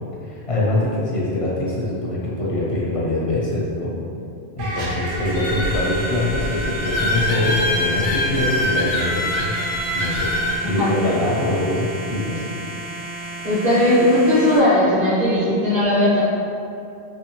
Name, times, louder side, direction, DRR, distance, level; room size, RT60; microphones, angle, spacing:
voice 1, 0.2-3.9 4.6-9.5 9.9-10.3 10.7-12.4, left 1 dB, 45° left, -6 dB, 0.4 m, -23 dB
sound 1, 4.6-14.6, right 2 dB, 80° right, 1.0 m, -32 dB
sound 2, 5.0-10.6, left 1 dB, 90° left, 1.0 m, -24 dB
voice 2, 13.4-16.2, left 1 dB, 40° right, -10 dB, 0.8 m, -17 dB
3.4 x 3.1 x 2.9 m, 2.6 s
omnidirectional pair, 1.2 m